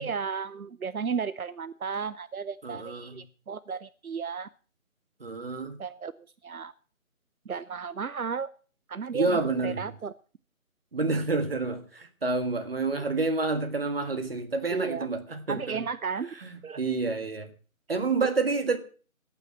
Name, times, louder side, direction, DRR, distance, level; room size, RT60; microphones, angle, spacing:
voice 1, 0.0-4.5 5.8-6.1 6.4-6.7 7.5-8.5 8.9-10.1 14.7-15.1 15.5-16.3 16.6-16.8, right 6 dB, 80° right, 16 dB, 0.7 m, -34 dB
voice 2, 2.6-3.3 5.2-5.8 9.1-9.9 10.9-15.8 16.4-17.5 17.9-18.8, right 3 dB, 40° right, 7 dB, 1.8 m, -29 dB
12.0 x 9.0 x 7.4 m, 0.39 s
figure-of-eight pair, 160°, 42 cm